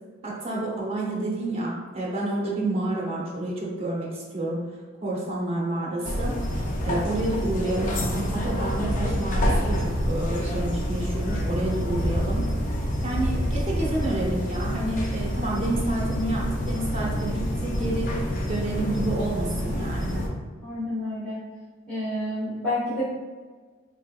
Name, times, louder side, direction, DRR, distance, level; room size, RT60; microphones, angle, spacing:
voice 1, 0.2-4.6 5.0-6.4 6.8-12.5 13.0-18.2 18.4-20.2, right 1 dB, 30° right, -4 dB, 0.9 m, -29 dB
sound 1, 6.0-20.3, equal, 45° left, 0.6 m, -27 dB
voice 2, 20.6-21.4 21.9-23.1, left 1 dB, 5° left, -15 dB, 1.3 m, -29 dB
3.9 x 3.1 x 2.5 m, 1.5 s
head